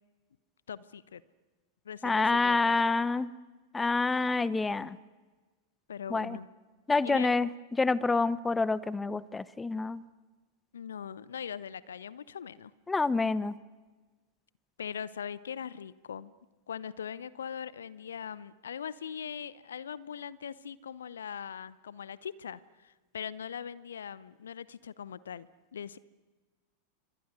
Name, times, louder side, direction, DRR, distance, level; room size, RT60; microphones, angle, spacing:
voice 1, 0.7-1.2 1.8-2.8 5.9-6.5 7.0-7.3 10.7-12.7 14.8-16.3 16.7-26.0, left 8 dB, 65° left, 20 dB, 0.7 m, -41 dB
voice 2, 2.0-3.3 3.7-5.0 6.1-6.4 6.9-7.5 7.8-10.0 12.9-13.5, left 3 dB, 10° left, 19 dB, 0.7 m, -27 dB
29.5 x 24.5 x 6.5 m, 1.3 s
figure-of-eight pair, 90°, 0 cm